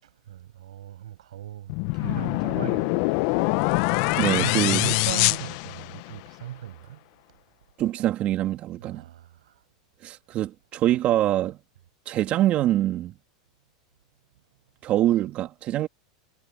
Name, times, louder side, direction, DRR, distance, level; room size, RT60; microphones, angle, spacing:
voice 1, 0.0-3.5 4.1-7.0 8.8-9.6, right 12 dB, 85° right, 7.9 m, -38 dB
sound 1, 1.7-6.3, left 24 dB, 60° left, 0.8 m, -24 dB
voice 2, 4.2-4.9 7.8-9.0 10.0-11.6 12.1-13.1 14.8-15.9, right 13 dB, 40° right, 2.9 m, -24 dB
supercardioid pair, 125°, 3 cm